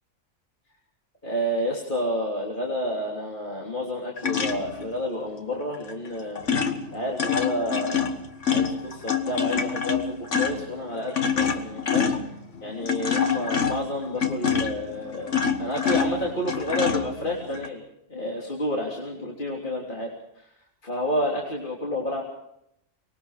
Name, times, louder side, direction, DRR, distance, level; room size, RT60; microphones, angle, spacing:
voice 1, 1.2-6.4 6.9-8.1 8.5-12.1 12.6-17.8 18.1-20.4 20.8-22.2, equal, 40° left, -2 dB, 3.5 m, -30 dB
sound 1, 4.2-4.9 5.9-6.1 6.4-17.7, left 6 dB, 70° left, 1.8 m, -26 dB
24.5 x 21.0 x 5.0 m, 0.75 s
omnidirectional pair, 1.3 m